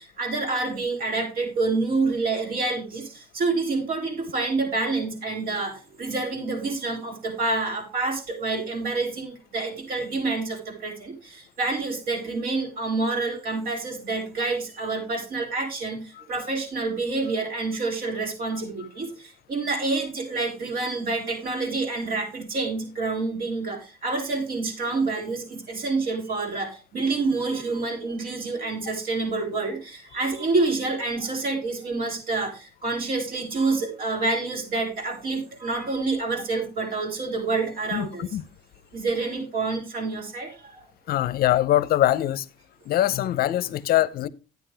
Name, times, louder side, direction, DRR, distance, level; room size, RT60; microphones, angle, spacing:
voice 1, 0.0-3.0 3.3-16.0 16.3-19.1 19.5-38.2 38.9-40.5 43.6-43.7, right 3 dB, 60° right, 5.4 m, -27 dB
voice 2, 37.9-38.4 41.1-42.5 42.9-44.3, left 13 dB, 65° left, 0.6 m, -23 dB
11.0 x 9.5 x 3.4 m
cardioid pair, 110°, 17 cm